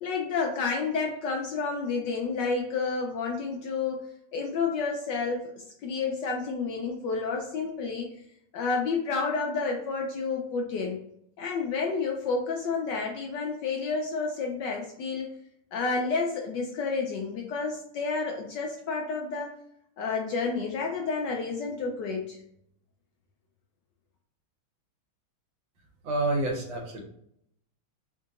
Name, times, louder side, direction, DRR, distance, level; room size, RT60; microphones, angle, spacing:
voice 1, 0.0-4.0 4.3-5.4 5.8-8.1 8.5-11.0 11.4-15.3 15.7-19.5 20.0-22.4, left 4 dB, 70° left, 0 dB, 1.1 m, -30 dB
voice 2, 26.0-27.0, right 2 dB, 65° right, 1 dB, 1.6 m, -28 dB
3.7 x 2.7 x 3.7 m, 0.72 s
omnidirectional pair, 2.3 m